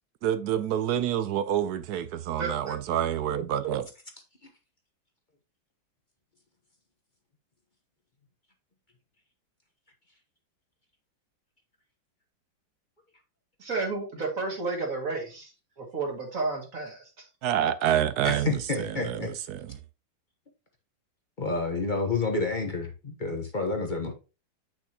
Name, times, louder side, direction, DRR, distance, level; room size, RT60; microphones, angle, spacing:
voice 1, 0.2-3.9 17.4-19.8, right 10 dB, 70° right, 1.0 m, -28 dB
voice 2, 2.4-2.8 13.6-17.3, right 3 dB, 45° right, 2.4 m, -32 dB
voice 3, 18.2-19.3 21.4-24.1, left 3 dB, 30° left, 1.0 m, -29 dB
8.4 x 6.4 x 2.9 m
omnidirectional pair, 2.1 m